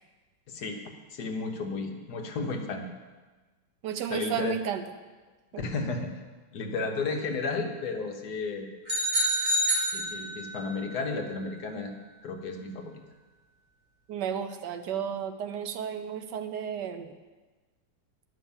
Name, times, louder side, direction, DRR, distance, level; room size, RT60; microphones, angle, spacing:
voice 1, 0.5-0.8 1.1-2.9 4.1-4.6 5.5-6.2 6.5-8.7 9.9-11.9 12.2-13.0, left 3 dB, 65° left, 3 dB, 1.5 m, -33 dB
voice 2, 3.8-4.8 5.5-5.6 14.1-17.2, right 8 dB, 80° right, 8 dB, 1.3 m, -33 dB
sound 1, 8.9-10.7, equal, 25° right, 2.6 m, -27 dB
10.5 x 5.8 x 7.2 m, 1.3 s
omnidirectional pair, 1.9 m